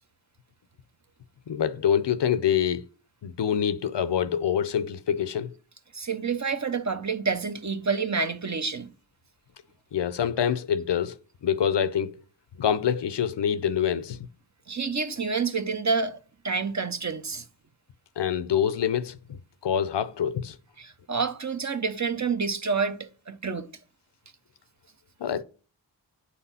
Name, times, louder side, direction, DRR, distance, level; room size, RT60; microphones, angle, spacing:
voice 1, 1.5-2.8 3.2-5.5 9.9-11.2 11.4-12.2 12.6-14.2 18.2-20.6 25.2-25.4, left 8 dB, 70° left, 0.7 m, -26 dB
voice 2, 5.9-8.9 14.7-16.2 16.4-17.4 20.8-23.7, right 5 dB, 40° right, 0.9 m, -28 dB
9.0 x 4.2 x 5.6 m
cardioid pair, 50°, 44 cm